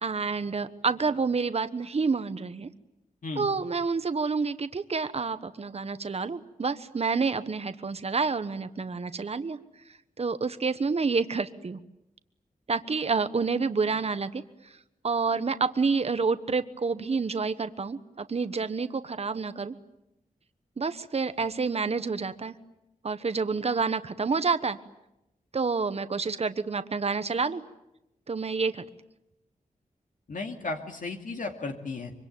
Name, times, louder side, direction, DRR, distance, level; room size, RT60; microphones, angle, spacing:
voice 1, 0.0-2.7 3.4-9.6 10.2-11.8 12.7-14.7 15.0-19.7 20.8-22.5 23.0-24.8 25.5-27.6 28.3-28.8, right 4 dB, 45° right, 11 dB, 1.2 m, -28 dB
voice 2, 30.3-32.1, left 3 dB, 65° left, 3 dB, 2.4 m, -34 dB
25.0 x 24.5 x 9.2 m, 0.88 s
wide cardioid pair, 120°, 15 cm